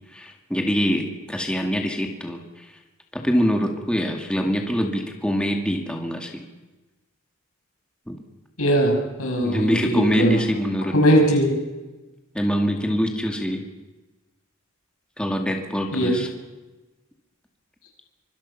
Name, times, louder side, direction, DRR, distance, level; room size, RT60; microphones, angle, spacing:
voice 1, 0.1-2.4 3.1-6.4 8.1-8.2 9.4-11.2 12.3-13.6 15.2-16.3, equal, 5° left, 2 dB, 2.1 m, -24 dB
voice 2, 8.6-10.4 10.9-11.5 15.9-16.2, equal, 90° left, 1 dB, 6.2 m, -20 dB
25.0 x 24.5 x 5.8 m, 1.1 s
head